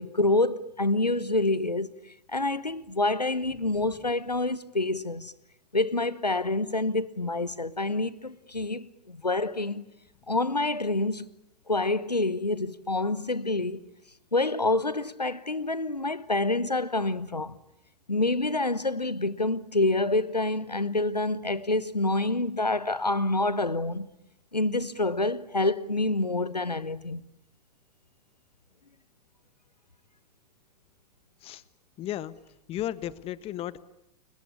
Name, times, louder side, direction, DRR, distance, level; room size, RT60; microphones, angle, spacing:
voice 1, 0.0-1.9 2.3-5.3 5.7-9.8 10.3-11.3 11.7-13.8 14.3-17.6 18.1-24.1 24.5-27.3, left 2 dB, 90° left, 1.1 m, -27 dB
voice 2, 32.0-32.3 32.7-33.8, left 12 dB, 30° left, 1.3 m, -34 dB
29.5 x 22.0 x 8.5 m
figure-of-eight pair, 95°, 20 cm